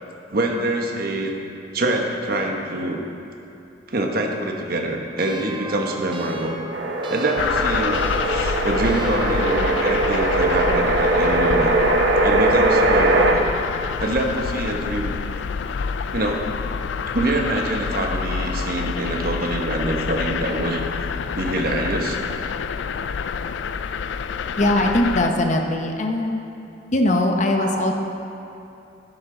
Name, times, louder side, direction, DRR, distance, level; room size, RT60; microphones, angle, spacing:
voice 1, 0.3-1.3 1.7-3.0 3.9-6.6 7.1-11.7 12.2-13.5 14.0-15.1 16.1-16.4 17.1-20.8 21.3-22.2 24.6-24.7 27.6-27.9, right 1 dB, 55° right, 1 dB, 1.1 m, -25 dB
sound 1, 5.2-10.9, right 3 dB, 25° right, 0.6 m, -34 dB
sound 2, 6.7-13.3, right 2 dB, 70° right, 0.9 m, -20 dB
sound 3, 7.4-25.3, left 6 dB, 80° left, 0.4 m, -27 dB
voice 2, 24.6-26.4 26.9-27.9, left 1 dB, 40° left, 3 dB, 0.8 m, -20 dB
11.5 x 10.5 x 3.9 m, 2.8 s
head